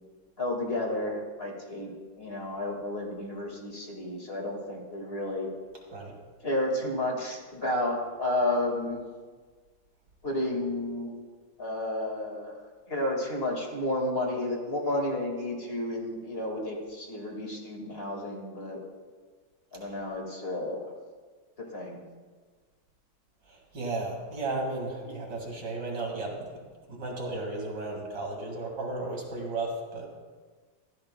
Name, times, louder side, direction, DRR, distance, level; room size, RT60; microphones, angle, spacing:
voice 1, 0.4-5.5 6.4-9.0 10.2-11.1 11.6-12.5 12.9-18.8 19.7-20.8 21.6-22.0, left 1 dB, 30° left, 0 dB, 1.9 m, -31 dB
voice 2, 23.5-26.5 26.9-30.1, right 2 dB, 55° right, 0 dB, 2.5 m, -34 dB
15.0 x 13.5 x 2.2 m, 1.5 s
omnidirectional pair, 2.3 m